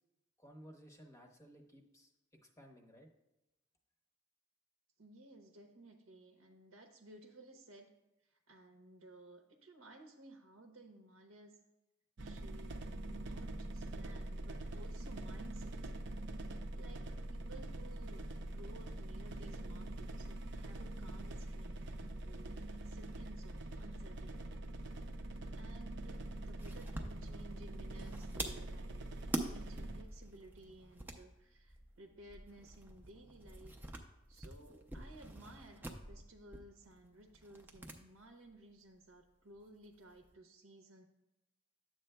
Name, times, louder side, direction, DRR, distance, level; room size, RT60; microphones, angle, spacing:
voice 1, 0.4-2.1 2.4-3.1, equal, 15° left, 2 dB, 0.8 m, -57 dB
voice 2, 5.0-7.9 8.2-11.6 12.2-12.7 13.0-15.7 16.7-24.6 25.6-29.0 29.3-34.0 34.3-41.0, right 1 dB, 80° right, 3 dB, 0.8 m, -57 dB
sound 1, 12.2-30.0, right 1 dB, 55° right, 0.6 m, -44 dB
sound 2, 26.6-38.0 38.2-38.3 39.6-40.3, right 1 dB, 10° right, 0.5 m, -47 dB
10.5 x 7.6 x 2.2 m, 0.94 s
head